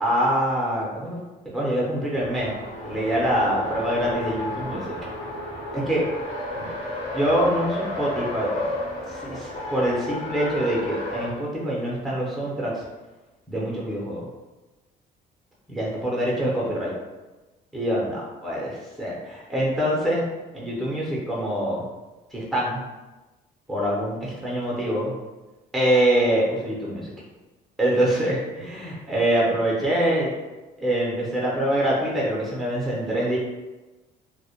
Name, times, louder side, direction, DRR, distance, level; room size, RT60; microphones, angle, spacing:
voice 1, 0.0-1.2 1.5-2.5 2.8-4.8 5.7-6.0 6.6-6.7 7.1-8.7 9.1-12.8 13.5-14.3 15.7-16.9 17.7-20.2 20.5-21.8 22.3-22.8 23.7-25.1 25.7-27.1 27.8-30.3 30.8-33.4, right 1 dB, ahead, -5 dB, 0.6 m, -25 dB
Race car auto racing, 2.1-11.4, left 1 dB, 35° left, 0.8 m, -32 dB
2.1 x 2.1 x 2.8 m, 1.1 s
cardioid pair, 110°, 17 cm